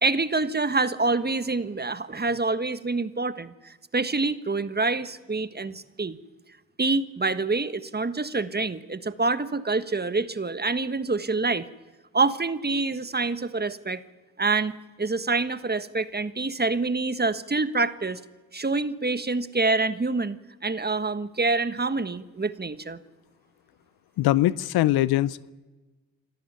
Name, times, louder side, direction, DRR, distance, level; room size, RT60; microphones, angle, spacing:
voice 1, 0.0-6.2 6.8-11.6 12.1-14.0 14.4-14.7 15.0-18.2 18.5-20.4 20.6-23.0, right 3 dB, 25° right, 13 dB, 1.5 m, -26 dB
voice 2, 24.2-25.5, left 15 dB, 80° left, 20 dB, 0.6 m, -22 dB
26.5 x 13.5 x 9.5 m, 1.2 s
hypercardioid pair, 40°, 37 cm